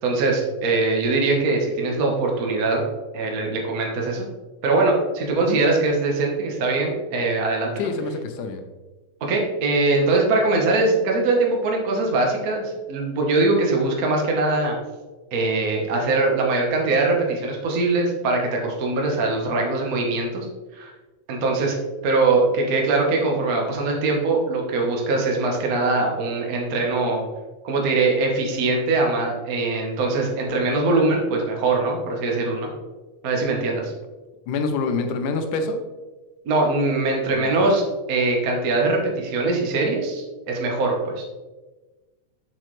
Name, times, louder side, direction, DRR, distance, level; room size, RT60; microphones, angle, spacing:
voice 1, 0.0-2.8 3.1-4.3 4.6-7.7 9.2-14.8 15.3-20.4 20.7-20.9 21.3-21.8 22.0-27.2 27.6-32.7 33.2-33.9 36.4-37.8 38.1-41.2, right 3 dB, 55° right, 0 dB, 1.0 m, -22 dB
voice 2, 7.8-8.6 34.5-35.8 37.3-37.5, left 4 dB, 90° left, 6 dB, 2.3 m, -26 dB
7.5 x 6.4 x 3.2 m, 1.2 s
omnidirectional pair, 3.4 m